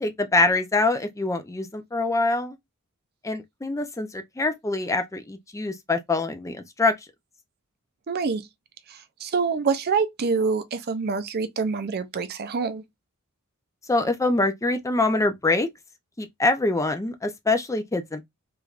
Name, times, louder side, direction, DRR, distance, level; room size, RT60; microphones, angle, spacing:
voice 1, 0.0-2.6 3.2-6.9 13.9-15.7 16.2-18.2, left 2 dB, 15° left, 0.4 m, -24 dB
voice 2, 8.1-8.5 8.9-12.8, right 5 dB, 45° right, 0.5 m, -26 dB
3.3 x 3.1 x 2.4 m
head